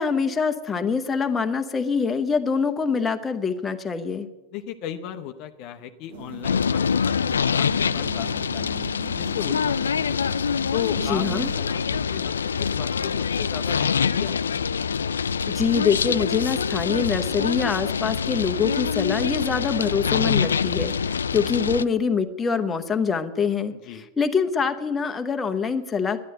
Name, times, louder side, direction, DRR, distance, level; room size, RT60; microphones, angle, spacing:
voice 1, 0.0-4.3 11.1-11.5 15.5-26.2, left 5 dB, 20° left, 7 dB, 1.0 m, -25 dB
voice 2, 4.5-8.7 9.2-10.2 10.7-12.3 12.6-14.5 23.8-24.1, left 11 dB, 45° left, 6 dB, 0.7 m, -35 dB
sound 1, 6.1-11.5, right 7 dB, 60° right, 1.1 m, -40 dB
sound 2, 6.4-21.8, left 6 dB, 75° left, 0.3 m, -25 dB
11.0 x 10.5 x 7.7 m, 1.1 s
figure-of-eight pair, 90°, 0 cm